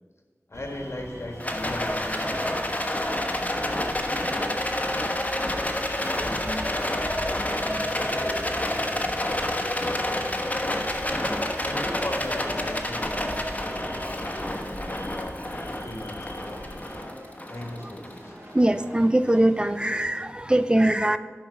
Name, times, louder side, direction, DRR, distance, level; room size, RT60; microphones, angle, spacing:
sound 1, 0.5-17.0, left 1 dB, 80° left, 1.3 m, -42 dB
voice 1, 0.5-4.7 6.1-10.6 11.6-16.8 17.5-18.3, left 1 dB, 60° left, 3 dB, 1.5 m, -39 dB
sound 2, 0.5-20.2, right 1 dB, 75° right, 2.2 m, -46 dB
Rattle, 1.4-18.8, left 1 dB, 30° left, 1.3 m, -29 dB
voice 2, 18.5-21.2, right 1 dB, 20° right, 11 dB, 0.4 m, -21 dB
11.0 x 6.0 x 6.2 m, 1.5 s
wide cardioid pair, 55°, 5 cm